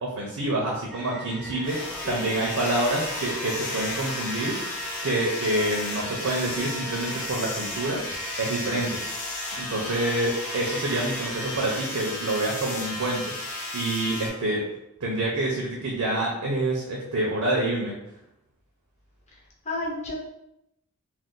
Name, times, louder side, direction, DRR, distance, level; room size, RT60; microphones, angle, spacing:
voice 1, 0.0-1.8 2.1-4.6 5.0-8.0 8.4-9.0 9.5-13.3 13.7-14.7 15.0-17.9, right 1 dB, 70° right, -2 dB, 0.6 m, -27 dB
sound 1, 0.9-13.4, right 2 dB, ahead, 0.5 m, -41 dB
sound 2, 1.6-14.3, left 2 dB, 90° left, 0.8 m, -34 dB
voice 2, 2.0-2.7 19.3-19.4 19.6-20.1, left 2 dB, 30° left, -3 dB, 0.8 m, -33 dB
2.5 x 2.3 x 3.7 m, 0.84 s
head